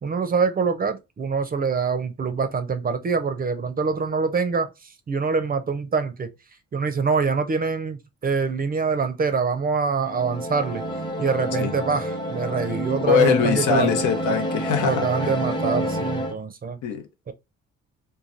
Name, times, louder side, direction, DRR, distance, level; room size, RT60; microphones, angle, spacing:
voice 1, 0.0-4.7 5.1-6.3 6.7-10.8 11.2-13.9 14.8-16.8 17.3-17.4, right 5 dB, 30° right, 0.5 m, -25 dB
sound 1, 10.0-16.3, right 1 dB, 15° left, 0.8 m, -28 dB
voice 2, 13.0-15.4 16.8-17.3, left 7 dB, 80° left, 0.8 m, -23 dB
3.2 x 2.2 x 2.5 m
cardioid pair, 90°, 30 cm